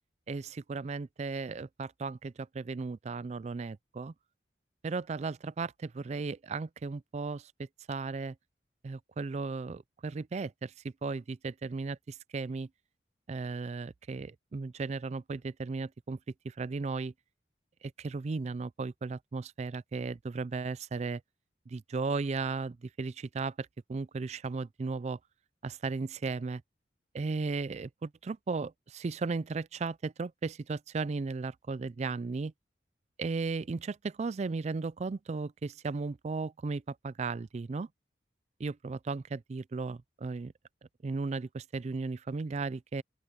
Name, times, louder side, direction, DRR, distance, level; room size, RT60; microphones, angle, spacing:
voice 1, 0.3-4.1 4.8-7.5 7.9-8.3 8.8-10.7 11.0-12.7 13.3-16.2 16.4-17.1 17.8-21.2 21.7-25.2 25.6-26.6 27.1-32.5 33.2-37.9 38.6-40.5 41.0-43.0, right 4 dB, 40° right, 0.4 m, -35 dB
open air
head